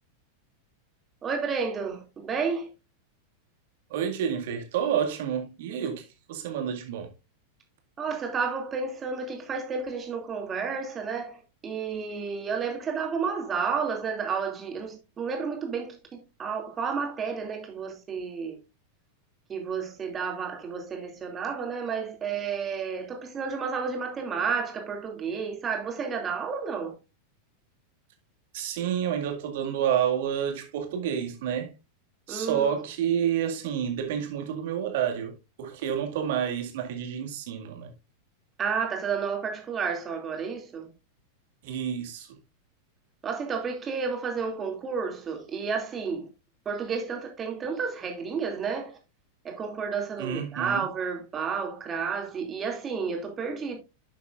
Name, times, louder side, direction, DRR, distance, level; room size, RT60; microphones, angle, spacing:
voice 1, 1.2-2.7 8.0-11.4 11.6-18.6 19.5-26.9 32.3-32.7 38.6-40.9 43.2-46.3 46.6-49.0 49.4-53.8, right 5 dB, 20° right, 2.7 m, -31 dB
voice 2, 3.9-7.1 28.5-31.7 32.3-37.9 41.6-42.3 50.2-50.9, right 9 dB, 55° right, 2.1 m, -29 dB
11.0 x 7.0 x 2.5 m
figure-of-eight pair, 90°, 0 cm